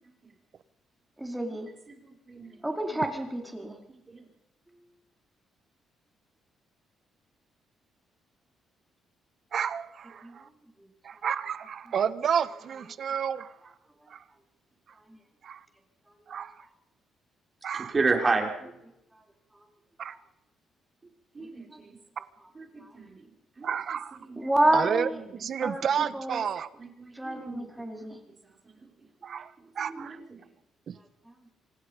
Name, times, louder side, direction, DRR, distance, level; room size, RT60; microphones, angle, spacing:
voice 1, 1.2-1.7 2.6-3.8 10.2-10.4 15.1-15.2 21.7-21.8 22.8-22.9 24.4-25.2 25.6-25.8 26.1-26.5 27.1-28.2, right 1 dB, 10° right, 2 dB, 4.4 m, -29 dB
voice 2, 9.5-10.4 11.0-13.5 14.1-14.2 15.4-15.6 16.3-16.5 17.6-17.9 20.0-20.1 22.2-22.3 23.6-24.2 24.7-25.1 25.4-26.7 29.2-30.2 30.9-31.0, right 8 dB, 60° right, 14 dB, 1.3 m, -31 dB
voice 3, 17.9-18.8 21.3-21.9 22.6-23.2 23.6-23.7 24.3-24.5 25.6-25.7 26.8-28.2 29.9-30.2, right 3 dB, 30° right, 1 dB, 5.7 m, -31 dB
26.0 x 19.0 x 5.4 m, 0.82 s
cardioid pair, 90°, 0 cm